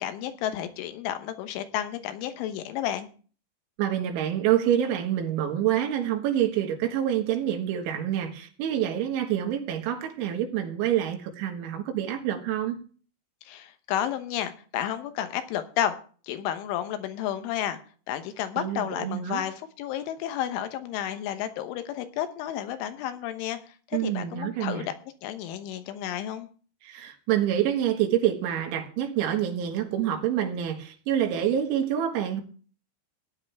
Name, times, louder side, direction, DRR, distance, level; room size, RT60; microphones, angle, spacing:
voice 1, 0.0-3.1 13.4-16.0 16.3-17.8 18.1-23.6 23.9-24.9 25.2-26.5, left 11 dB, 85° left, 10 dB, 3.5 m, -31 dB
voice 2, 3.8-12.8 18.6-19.4 23.9-24.9 26.8-32.4, right 10 dB, 80° right, 3 dB, 3.9 m, -27 dB
17.0 x 10.0 x 3.5 m, 0.41 s
omnidirectional pair, 5.4 m